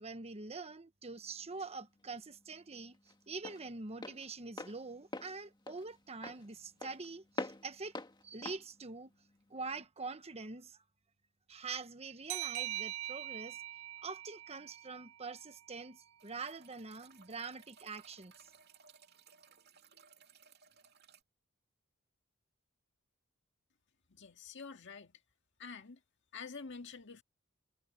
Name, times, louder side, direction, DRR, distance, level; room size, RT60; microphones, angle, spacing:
voice 1, 0.0-3.0 3.3-7.9 8.2-9.1 9.5-10.8 11.5-13.6 14.0-18.5, right 4 dB, 30° right, 1.1 m, -45 dB
Walk footsteps, 1.2-9.9, left 2 dB, 20° left, 1.8 m, -47 dB
sound 1, 12.3-15.6, right 15 dB, 70° right, 0.3 m, -42 dB
sound 2, 16.2-21.2, right 6 dB, 55° right, 2.6 m, -62 dB
voice 2, 24.1-25.1 25.6-26.0 26.3-27.2, left 5 dB, 60° left, 1.9 m, -47 dB
head